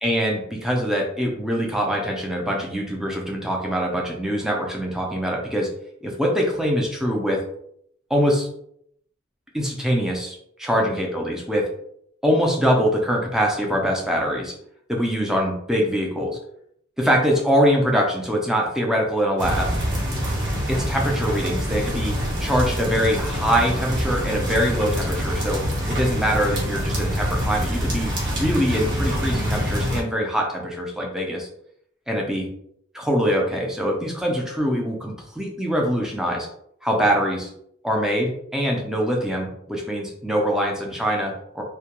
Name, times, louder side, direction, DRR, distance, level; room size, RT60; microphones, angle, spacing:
voice 1, 0.0-5.7 6.0-7.4 8.1-8.5 9.5-10.4 10.6-11.7 12.2-14.5 14.9-16.4 17.0-19.7 20.7-31.5 32.1-32.5 32.9-36.5 36.8-37.5 37.8-41.6, equal, 5° right, 0 dB, 0.4 m, -23 dB
sound 1, 19.4-30.0, equal, 60° right, 0.8 m, -25 dB
2.2 x 2.2 x 2.9 m, 0.69 s
head